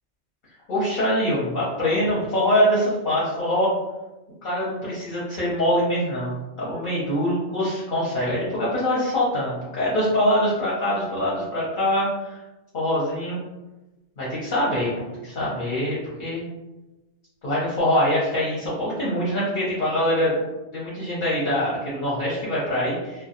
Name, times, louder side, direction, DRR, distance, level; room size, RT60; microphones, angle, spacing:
voice 1, 0.7-3.7 4.4-12.4 12.7-13.4 14.2-16.4 17.4-20.4 20.7-23.2, equal, 50° left, -7 dB, 0.7 m, -24 dB
2.2 x 2.1 x 2.8 m, 1.1 s
omnidirectional pair, 1.2 m